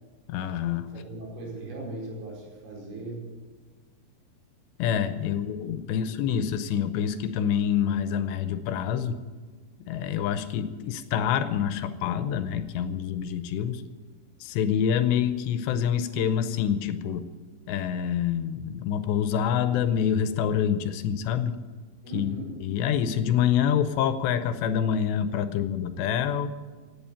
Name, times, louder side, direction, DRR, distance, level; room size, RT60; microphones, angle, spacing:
voice 1, 0.3-0.9 4.8-9.2 9.8-13.8 14.4-17.3 17.7-21.6 22.1-22.3 22.6-26.5, left 8 dB, 85° left, 11 dB, 2.8 m, -26 dB
voice 2, 0.9-3.3 5.2-5.4 5.8-6.2 22.0-22.6, right 2 dB, 90° right, -3 dB, 7.5 m, -39 dB
16.0 x 9.3 x 8.6 m, 1.5 s
omnidirectional pair, 5.2 m